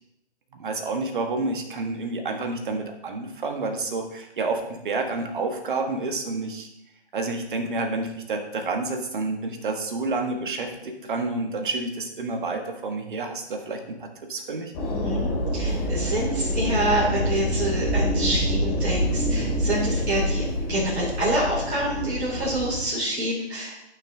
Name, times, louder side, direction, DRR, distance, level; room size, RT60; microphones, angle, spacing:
voice 1, 0.6-6.7 7.1-14.7, right 3 dB, 45° right, 4 dB, 1.4 m, -29 dB
sound 1, 14.7-22.8, equal, 30° left, 2.7 m, -26 dB
voice 2, 14.9-23.8, right 1 dB, 70° right, -7 dB, 3.1 m, -27 dB
13.0 x 6.0 x 2.7 m, 0.83 s
figure-of-eight pair, 140°, 34 cm